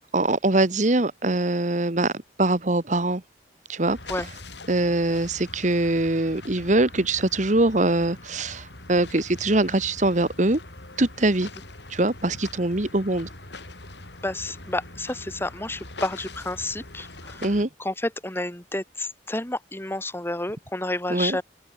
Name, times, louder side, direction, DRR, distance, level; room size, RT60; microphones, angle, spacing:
voice 1, 0.1-2.1 2.4-3.2 3.7-4.0 4.7-10.6 11.0-11.5 11.9-13.3 17.4-17.7 21.1-21.4, right 2 dB, 45° right, 1.4 m, -23 dB
sound 1, 3.8-17.6, left 2 dB, 75° left, 7.7 m, -42 dB
voice 2, 14.2-21.4, left 1 dB, 15° left, 2.0 m, -30 dB
open air
head